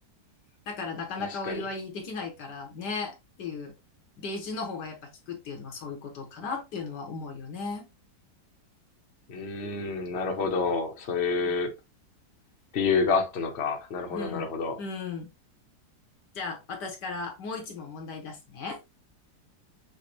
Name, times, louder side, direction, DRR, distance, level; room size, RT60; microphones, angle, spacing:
voice 1, 0.7-3.7 4.2-5.0 5.3-7.9 11.5-11.6 14.1-14.5 14.8-15.3 16.4-18.8, left 4 dB, 75° left, 1.8 m, -36 dB
voice 2, 1.2-1.7 9.3-11.7 12.7-14.8, left 4 dB, 45° left, 1.1 m, -28 dB
6.7 x 2.3 x 3.0 m
omnidirectional pair, 1.9 m